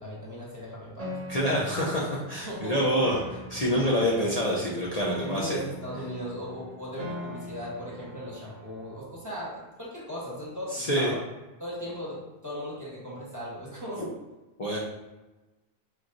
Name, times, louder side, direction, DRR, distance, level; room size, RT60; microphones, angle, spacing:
voice 1, 0.0-1.1 2.4-2.9 5.2-11.2 11.6-14.0, equal, 15° right, -6 dB, 1.4 m, -37 dB
Piano, 1.0-9.0, left 1 dB, 40° right, 1.0 m, -42 dB
voice 2, 1.3-3.2 3.5-5.6 10.7-11.1 14.6-14.8, equal, 40° left, -5 dB, 0.8 m, -26 dB
4.6 x 4.3 x 2.6 m, 1.1 s
omnidirectional pair, 1.1 m